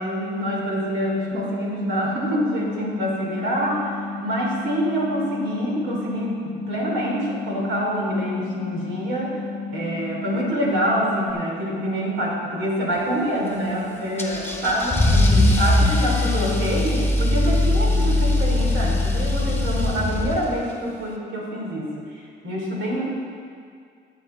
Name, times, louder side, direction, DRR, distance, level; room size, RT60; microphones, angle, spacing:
voice 1, 0.0-9.4 9.7-22.0 22.4-23.0, equal, 75° right, -3 dB, 3.0 m, -26 dB
sound 1, 1.3-11.3, left 4 dB, 35° left, 0.7 m, -33 dB
Car / Engine starting / Accelerating revving vroom, 14.2-20.7, left 2 dB, 10° left, 1.3 m, -20 dB
13.0 x 8.5 x 3.8 m, 2.2 s
cardioid pair, 90°, 20 cm